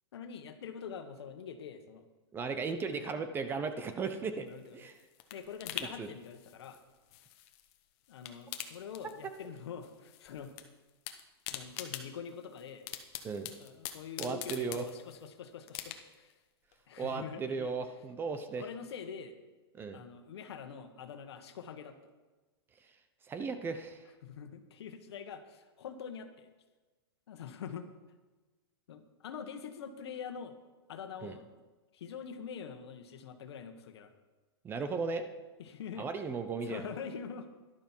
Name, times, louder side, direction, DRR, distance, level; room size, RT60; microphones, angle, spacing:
voice 1, 0.1-2.1 3.0-3.1 4.4-4.8 5.3-6.8 8.1-10.5 11.5-12.9 13.6-16.3 16.9-17.7 18.6-19.4 19.9-22.0 24.2-26.5 27.3-27.9 28.9-30.6 30.9-31.5 31.9-34.1 35.6-36.1 36.6-37.5, left 7 dB, 75° left, 8 dB, 1.4 m, -45 dB
voice 2, 2.3-4.5 4.7-4.9 5.8-6.1 13.2-13.5 14.2-14.8 17.0-18.6 19.7-20.0 23.3-24.0 31.2-31.4 34.6-35.3 36.0-36.9, right 5 dB, 15° right, 9 dB, 0.7 m, -36 dB
sound 1, 4.5-7.8 8.1-9.6 9.8-10.6 10.9-15.3 15.7-16.3 16.7-16.8, left 12 dB, 40° left, 1.0 m, -44 dB
12.5 x 11.5 x 4.5 m, 1.2 s
hypercardioid pair, 150°, 14 cm